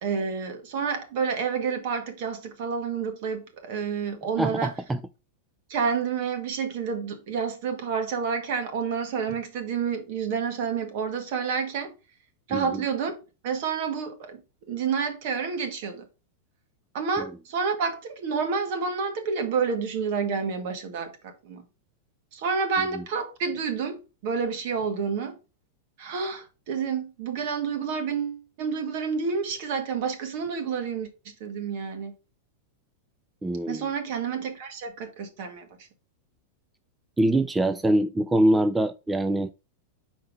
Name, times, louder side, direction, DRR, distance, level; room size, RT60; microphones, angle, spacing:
voice 1, 0.0-4.7 5.7-11.9 12.5-13.2 13.4-14.4 14.7-16.1 16.9-21.6 22.3-25.4 26.0-31.1 31.4-32.1 33.7-35.9, right 6 dB, 55° right, 1.8 m, -29 dB
voice 2, 4.4-5.0 12.5-12.8 33.4-33.9 37.2-39.5, right 1 dB, 10° right, 0.3 m, -24 dB
5.8 x 4.5 x 5.2 m
supercardioid pair, 150°, 0 cm